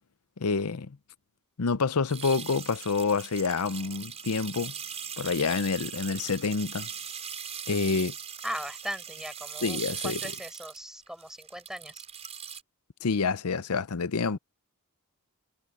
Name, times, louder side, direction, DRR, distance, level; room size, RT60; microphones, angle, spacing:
voice 1, 0.4-1.0 1.6-4.7 5.2-6.9 7.7-8.1 9.6-10.2 13.0-14.4, left 4 dB, 80° left, 0.7 m, -28 dB
sound 1, 2.1-12.6, right 7 dB, 30° right, 4.7 m, -40 dB
voice 2, 8.4-12.0, equal, ahead, 4.9 m, -39 dB
head